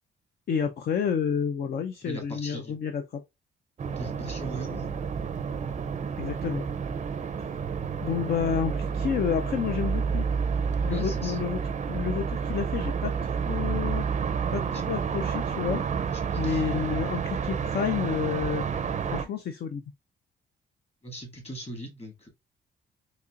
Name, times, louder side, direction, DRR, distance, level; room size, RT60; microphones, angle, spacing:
voice 1, 0.5-3.2 6.2-6.7 8.0-10.2 10.8-14.0 14.5-15.8 16.4-18.6 19.1-19.8, left 7 dB, 50° left, 0.5 m, -30 dB
voice 2, 2.0-2.8 3.9-4.9 10.9-11.4 14.7-14.8 16.1-17.0 21.0-22.3, right 1 dB, 30° left, 2.0 m, -40 dB
sound 1, 3.8-19.2, right 6 dB, 35° right, 0.5 m, -30 dB
4.1 x 2.9 x 2.4 m
cardioid pair, 90°, 20 cm